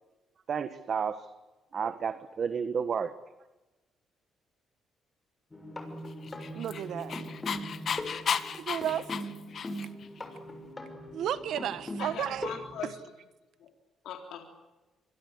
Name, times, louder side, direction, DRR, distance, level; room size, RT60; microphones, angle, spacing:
voice 1, 0.5-1.3 1.7-3.1, right 6 dB, 50° right, 11 dB, 1.5 m, -31 dB
sound 1, 5.5-12.8, equal, 20° left, 6.5 m, -41 dB
Dog, 6.2-10.1, left 7 dB, 55° left, 1.7 m, -34 dB
voice 2, 6.5-7.2 8.4-9.1 11.1-12.5, right 10 dB, 75° right, 13 dB, 1.5 m, -33 dB
voice 3, 12.0-13.0 13.6-13.7 14.0-14.4, left 8 dB, 80° left, 3 dB, 3.7 m, -40 dB
25.5 x 23.0 x 8.2 m, 1.1 s
cardioid pair, 90°, 0 cm